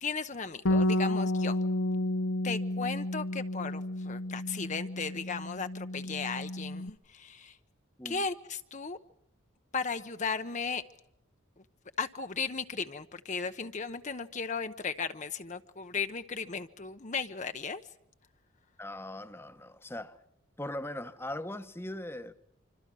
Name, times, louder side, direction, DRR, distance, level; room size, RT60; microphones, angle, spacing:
voice 1, 0.0-1.6 2.4-7.6 8.0-9.0 9.7-10.8 12.0-17.8, left 5 dB, 35° left, 0.8 m, -36 dB
Bass guitar, 0.7-6.9, left 1 dB, 80° left, 1.0 m, -31 dB
voice 2, 18.8-20.2 20.6-22.3, left 1 dB, 10° left, 1.0 m, -40 dB
26.5 x 25.5 x 6.2 m
head